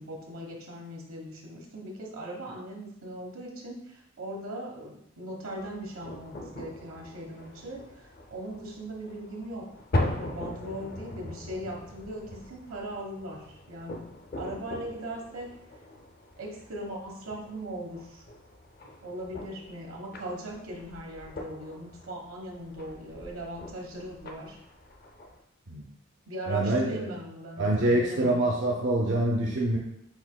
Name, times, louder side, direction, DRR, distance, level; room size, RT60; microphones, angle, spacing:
voice 1, 0.0-9.7 10.0-14.0 14.4-15.5 16.4-18.2 19.0-24.6 26.3-28.4, right 1 dB, 85° right, -1 dB, 1.1 m, -39 dB
sound 1, 5.5-25.4, left 1 dB, 45° left, 0.5 m, -40 dB
voice 2, 26.5-27.1 27.6-29.8, right 1 dB, 55° right, -1 dB, 0.5 m, -25 dB
7.8 x 2.8 x 2.2 m, 0.77 s
head